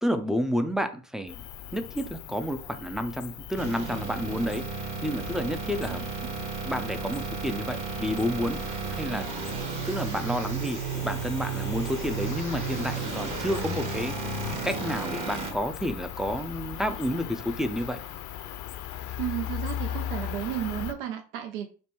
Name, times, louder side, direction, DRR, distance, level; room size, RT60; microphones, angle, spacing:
voice 1, 0.0-1.4 1.7-6.0 6.7-9.3 9.9-18.0, equal, ahead, 9 dB, 0.3 m, -30 dB
Cricket, 1.3-20.9, left 10 dB, 50° left, 0.6 m, -39 dB
sound 1, 3.6-15.5, right 6 dB, 50° right, 1.2 m, -34 dB
voice 2, 19.2-21.7, right 11 dB, 85° right, 6 dB, 0.6 m, -33 dB
5.2 x 2.1 x 2.9 m, 0.38 s
hypercardioid pair, 80°, 40 cm